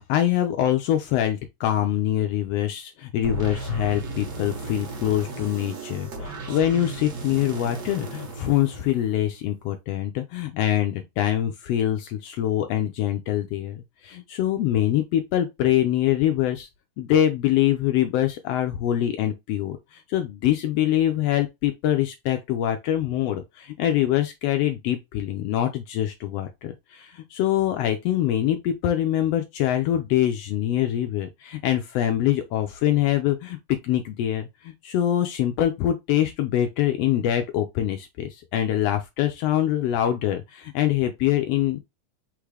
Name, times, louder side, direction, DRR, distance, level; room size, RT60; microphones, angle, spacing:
voice 1, 0.0-16.7 17.0-41.9, left 12 dB, 90° left, 1.4 m, -24 dB
sound 1, 3.2-9.4, right 2 dB, 45° right, 1.4 m, -35 dB
4.2 x 3.6 x 3.2 m
omnidirectional pair, 3.5 m